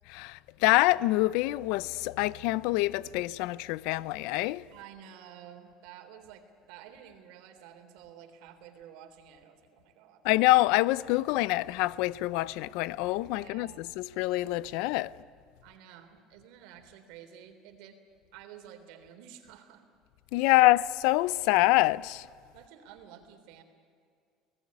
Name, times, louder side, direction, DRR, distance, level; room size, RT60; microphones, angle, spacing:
voice 1, 0.1-4.6 10.2-15.1 20.3-22.3, left 18 dB, 75° left, 0.6 m, -26 dB
voice 2, 4.7-10.2 13.3-13.9 15.6-18.0 18.3-19.8 20.5-20.7 22.5-23.6, right 9 dB, 75° right, 3.4 m, -51 dB
29.0 x 18.5 x 9.6 m
cardioid pair, 175°, 0 cm